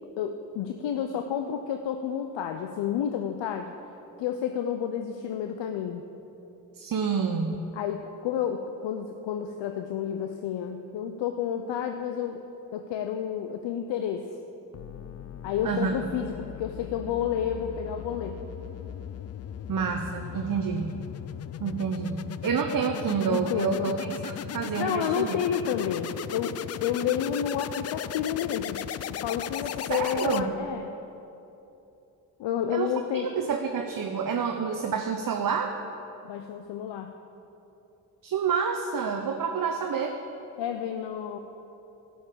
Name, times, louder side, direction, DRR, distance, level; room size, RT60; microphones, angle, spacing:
voice 1, 0.2-3.7 4.2-6.0 7.7-12.5 12.7-14.4 15.4-18.4 23.3-24.0 24.8-28.8 29.1-30.9 32.4-33.3 36.2-37.1 40.6-41.4, left 9 dB, 70° left, 6 dB, 0.7 m, -30 dB
voice 2, 6.7-7.5 15.6-15.9 19.7-20.9 21.6-25.3 29.9-30.5 32.7-32.9 33.1-35.7 38.2-40.2, right 6 dB, 45° right, 4 dB, 0.9 m, -28 dB
sound 1, 14.7-30.8, left 10 dB, 35° left, 0.4 m, -37 dB
12.0 x 5.5 x 8.6 m, 2.9 s
hypercardioid pair, 40°, 46 cm